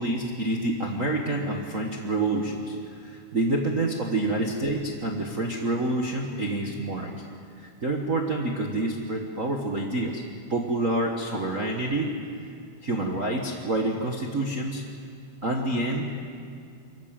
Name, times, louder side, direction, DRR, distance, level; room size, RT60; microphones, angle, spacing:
voice 1, 0.0-7.1 7.6-10.2 10.5-12.1 12.8-14.8 15.4-16.2, right 2 dB, 50° right, 0 dB, 0.9 m, -27 dB
24.0 x 15.0 x 9.0 m, 2.3 s
omnidirectional pair, 3.6 m